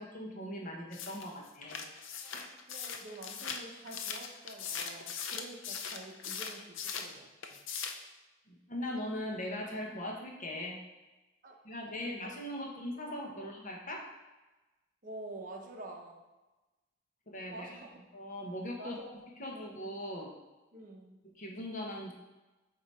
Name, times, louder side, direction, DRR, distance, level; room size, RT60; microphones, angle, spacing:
voice 1, 0.0-1.8 2.3-2.5 8.5-10.8 11.6-14.0 17.3-17.8 18.1-19.0 19.4-20.3 21.4-22.1, left 1 dB, 45° left, -1 dB, 1.1 m, -40 dB
sound 1, 0.9-7.1 7.4-8.1, left 6 dB, 90° left, 0.6 m, -40 dB
voice 2, 2.7-7.6 11.4-11.6 12.0-12.6 13.3-13.5 15.0-16.2 17.5-17.9 18.8-19.2 19.5-19.9 20.7-21.2, right 2 dB, 45° right, 1 dB, 0.9 m, -48 dB
7.9 x 3.0 x 4.2 m, 1.1 s
head